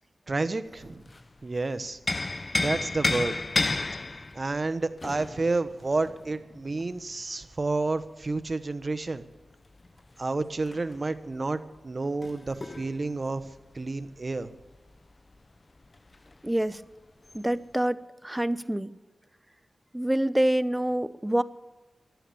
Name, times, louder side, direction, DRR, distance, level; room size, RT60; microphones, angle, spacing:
voice 1, 0.3-1.0 1.4-2.0 2.6-3.4 4.1-9.2 10.2-13.4 13.7-14.5, right 3 dB, 45° right, 11 dB, 1.1 m, -30 dB
sound 1, 0.7-1.4 1.8-7.3 9.2-15.0 15.3-15.4 15.8-16.5 17.3-17.4, left 2 dB, 40° left, 0.7 m, -33 dB
voice 2, 16.4-16.9 17.3-18.9 19.9-21.4, right 1 dB, 10° right, 16 dB, 0.8 m, -26 dB
15.5 x 11.5 x 7.0 m, 1.2 s
cardioid pair, 50°, 0 cm